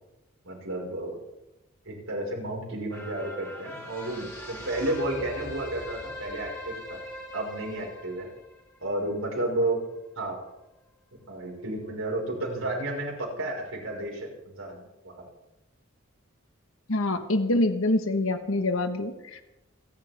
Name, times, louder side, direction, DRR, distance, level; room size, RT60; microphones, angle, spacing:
voice 1, 0.4-1.1 1.9-7.0 7.3-8.3 8.8-9.8 10.2-10.4 11.3-15.1, right 1 dB, 85° right, -2 dB, 5.3 m, -32 dB
sound 1, 2.9-9.5 10.0-10.1, left 1 dB, 15° left, 3.8 m, -41 dB
voice 2, 16.9-19.4, left 2 dB, 85° left, 8 dB, 1.5 m, -25 dB
29.0 x 10.5 x 3.6 m, 0.94 s
head